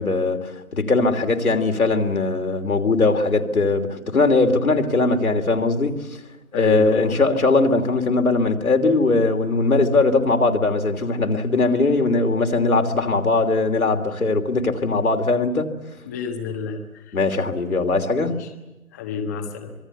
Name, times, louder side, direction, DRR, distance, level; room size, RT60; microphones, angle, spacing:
voice 1, 0.0-6.0 6.5-15.7 17.1-18.4, left 3 dB, 75° left, 6 dB, 3.1 m, -20 dB
voice 2, 6.5-7.1 16.0-17.2 18.2-18.5 18.9-19.7, left 5 dB, 10° left, 4 dB, 1.3 m, -30 dB
26.0 x 21.5 x 8.2 m, 1.0 s
figure-of-eight pair, 160°, 44 cm